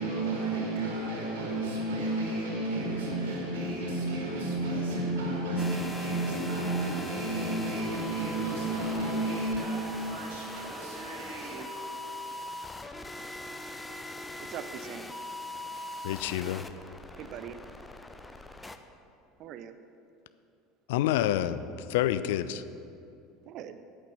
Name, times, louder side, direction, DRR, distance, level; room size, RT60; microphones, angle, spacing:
voice 1, 0.0-11.9, right 2 dB, 70° right, 2.7 m, -32 dB
sound 1, 5.6-18.8, left 1 dB, 10° left, 0.7 m, -41 dB
voice 2, 14.5-15.1 16.8-17.6 19.4-19.7 23.4-23.8, right 9 dB, 45° right, 0.6 m, -42 dB
voice 3, 16.0-16.6 20.9-22.6, left 12 dB, 60° left, 0.4 m, -28 dB
8.7 x 8.4 x 7.1 m
figure-of-eight pair, 70°, 0 cm